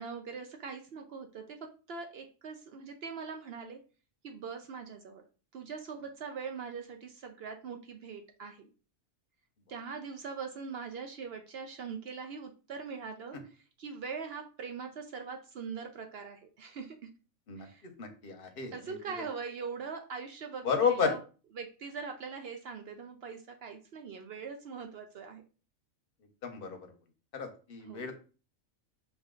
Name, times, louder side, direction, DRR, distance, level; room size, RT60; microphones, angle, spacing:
voice 1, 0.0-3.8 4.2-5.2 5.5-8.6 9.7-13.4 13.8-17.0 17.6-17.8 18.7-21.2 21.5-25.4 27.8-28.0, right 5 dB, 60° right, 5 dB, 0.7 m, -42 dB
voice 2, 18.0-18.7 20.6-21.1 26.4-26.8 27.3-28.2, left 6 dB, 45° left, 5 dB, 0.9 m, -31 dB
4.9 x 2.6 x 3.7 m, 0.36 s
omnidirectional pair, 1.5 m